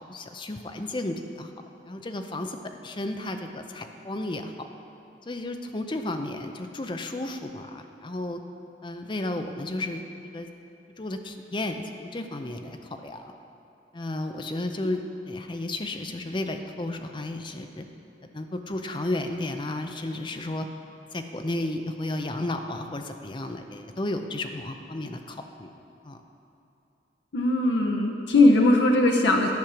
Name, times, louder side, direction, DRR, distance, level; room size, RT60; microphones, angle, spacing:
voice 1, 0.0-1.5 1.9-4.7 5.3-8.4 8.8-10.0 10.3-10.5 11.0-12.8 13.0-13.3 13.9-15.0 15.3-17.9 18.3-20.7 21.1-25.7 26.0-26.2, left 2 dB, 25° left, 6 dB, 0.6 m, -33 dB
voice 2, 27.3-29.5, left 2 dB, 85° left, 1 dB, 0.8 m, -19 dB
10.5 x 6.6 x 5.9 m, 2.9 s
head